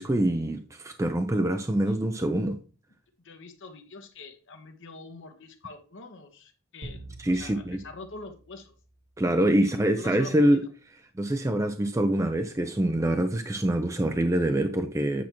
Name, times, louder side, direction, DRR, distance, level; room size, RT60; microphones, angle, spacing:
voice 1, 0.0-2.6 7.2-7.8 9.2-10.6 11.2-15.2, right 1 dB, 15° right, 0.4 m, -25 dB
voice 2, 3.2-7.0 7.3-8.7 9.6-10.6, left 3 dB, 55° left, 0.9 m, -45 dB
sound 1, 6.8-9.4, right 1 dB, 65° right, 1.4 m, -46 dB
8.6 x 5.8 x 2.9 m
head